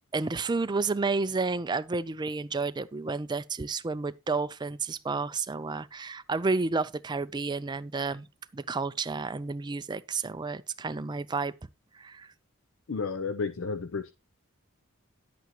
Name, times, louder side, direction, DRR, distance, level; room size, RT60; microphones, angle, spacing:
voice 1, 0.1-8.3 8.5-11.5 11.9-12.3, right 3 dB, 20° right, 0.4 m, -31 dB
voice 2, 12.9-14.1, left 4 dB, 60° left, 0.5 m, -32 dB
10.5 x 8.3 x 2.9 m
head